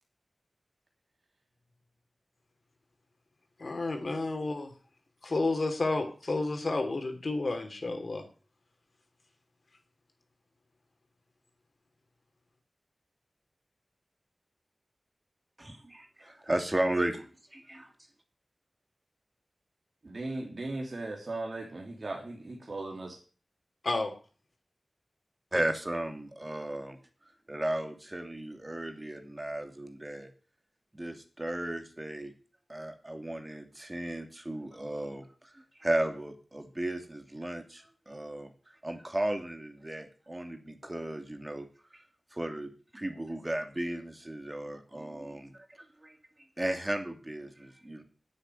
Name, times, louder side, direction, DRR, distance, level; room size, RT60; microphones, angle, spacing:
voice 1, 3.6-4.7 5.2-8.2 23.8-24.1, left 2 dB, 65° left, 4 dB, 3.1 m, -31 dB
voice 2, 15.6-17.9 25.5-27.0 27.2-30.3 30.9-32.3 32.7-38.5 38.8-41.7 41.9-42.0 42.3-46.2 46.6-48.0, right 1 dB, 25° right, 6 dB, 2.7 m, -35 dB
voice 3, 20.0-23.2, right 2 dB, 65° right, 1 dB, 3.0 m, -37 dB
9.7 x 8.8 x 9.4 m, 0.39 s
wide cardioid pair, 60°, 0 cm